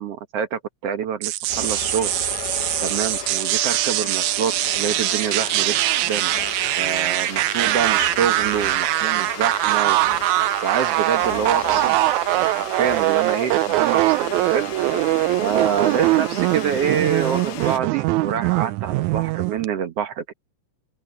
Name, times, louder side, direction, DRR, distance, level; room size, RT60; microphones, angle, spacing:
voice 1, 0.0-2.1 2.8-6.3 6.8-10.0 10.6-12.0 12.3-14.7 15.4-20.2, right 8 dB, 60° right, 2.0 m, -26 dB
sound 1, 1.2-19.7, right 18 dB, 80° right, 1.8 m, -22 dB
sound 2, 1.5-17.8, left 12 dB, 85° left, 2.6 m, -35 dB
open air
omnidirectional pair, 3.7 m